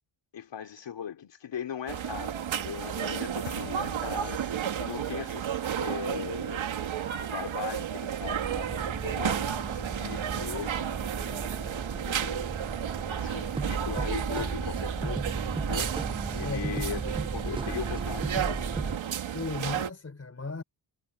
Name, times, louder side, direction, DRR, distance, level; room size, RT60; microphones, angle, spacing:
voice 1, 0.3-6.6 7.2-10.9 11.9-12.5 13.1-18.6, left 8 dB, 65° left, 3.1 m, -39 dB
sound 1, 1.9-19.9, right 9 dB, 80° right, 2.4 m, -33 dB
Explosion, 3.5-5.1, left 10 dB, 90° left, 2.0 m, -45 dB
sound 2, 8.2-19.0, right 3 dB, 15° right, 0.3 m, -35 dB
voice 2, 19.3-20.6, left 4 dB, 30° left, 4.2 m, -36 dB
cardioid pair, 100°, 47 cm